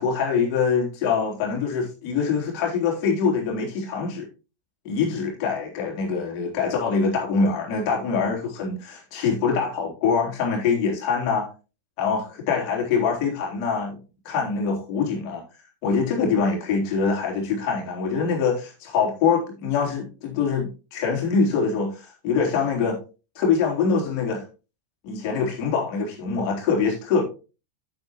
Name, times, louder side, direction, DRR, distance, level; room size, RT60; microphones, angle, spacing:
voice 1, 0.0-4.3 4.8-11.5 12.0-14.0 14.2-15.4 15.8-23.0 23.4-24.4 25.0-27.2, left 5 dB, 40° left, 3.7 m, -24 dB
9.3 x 7.7 x 3.1 m
figure-of-eight pair, 90°, 0 cm